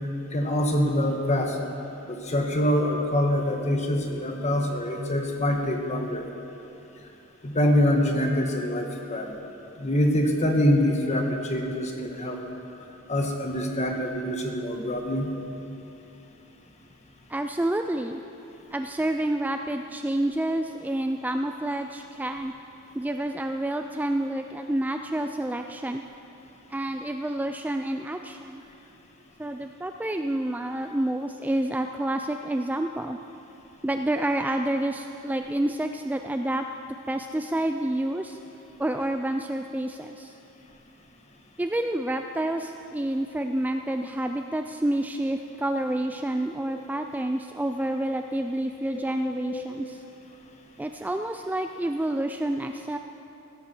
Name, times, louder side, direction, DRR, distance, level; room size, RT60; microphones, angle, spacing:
voice 1, 0.3-1.6 2.1-6.2 7.4-9.4 9.8-12.4 13.1-15.3 46.7-46.8 48.9-49.0 49.5-49.6, left 1 dB, 35° left, 2 dB, 1.4 m, -25 dB
voice 2, 17.3-18.2 18.7-22.6 22.9-26.0 26.7-28.6 29.4-33.2 33.8-36.7 37.1-38.4 38.8-40.4 41.6-50.0 50.8-53.0, right 1 dB, 10° right, 6 dB, 0.3 m, -28 dB
16.0 x 13.0 x 4.5 m, 2.9 s
head